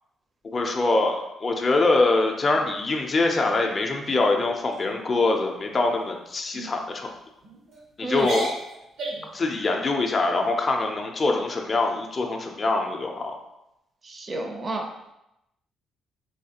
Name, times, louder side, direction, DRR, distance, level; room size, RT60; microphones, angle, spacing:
voice 1, 0.5-7.1 8.0-8.5 9.3-13.3, left 3 dB, 35° left, 2 dB, 0.5 m, -24 dB
sound 1, 2.4-3.0 3.4-3.7 4.1-4.3 4.7-5.1 5.7-6.0 6.5-6.7 7.4-7.8 8.1-9.4, right 2 dB, 75° right, 0.8 m, -36 dB
voice 2, 8.0-8.3 14.0-14.9, right 2 dB, 35° right, 3 dB, 0.5 m, -30 dB
3.2 x 3.1 x 2.8 m, 0.87 s
cardioid pair, 90°, 0 cm